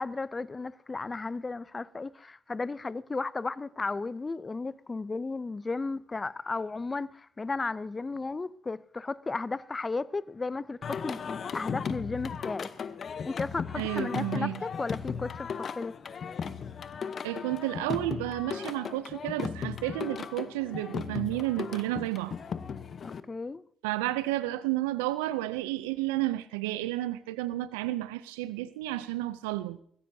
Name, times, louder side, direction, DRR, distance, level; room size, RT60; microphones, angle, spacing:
voice 1, 0.0-12.7 13.2-15.9 23.0-23.6, left 3 dB, 30° left, 0.5 m, -34 dB
Singing, 10.8-23.2, left 6 dB, 55° left, 0.9 m, -36 dB
voice 2, 13.7-14.6 17.2-22.4 23.8-29.8, right 16 dB, 85° right, 0.4 m, -31 dB
21.5 x 15.0 x 2.7 m
hypercardioid pair, 45°, 0 cm